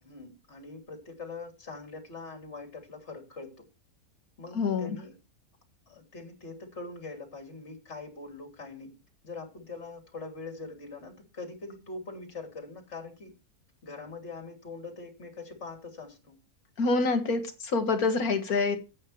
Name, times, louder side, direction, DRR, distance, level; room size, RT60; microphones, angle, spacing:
voice 1, 0.0-3.6 4.4-5.1 5.9-8.9 9.2-13.3 13.8-16.4, left 3 dB, 45° left, 3 dB, 3.2 m, -43 dB
voice 2, 4.5-5.0 16.8-18.8, left 3 dB, 75° left, 6 dB, 2.2 m, -26 dB
14.0 x 8.8 x 3.2 m, 0.30 s
omnidirectional pair, 1.6 m